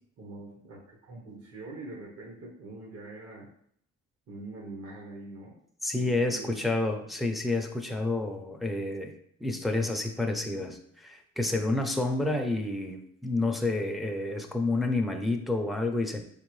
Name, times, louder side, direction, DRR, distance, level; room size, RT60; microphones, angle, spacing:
voice 1, 0.2-3.5 4.3-5.6 6.0-6.7, right 2 dB, 55° right, -3 dB, 1.1 m, -44 dB
voice 2, 5.8-9.2 9.4-16.2, left 2 dB, ahead, 4 dB, 0.5 m, -29 dB
4.5 x 3.7 x 3.1 m, 0.66 s
cardioid pair, 90°, 30 cm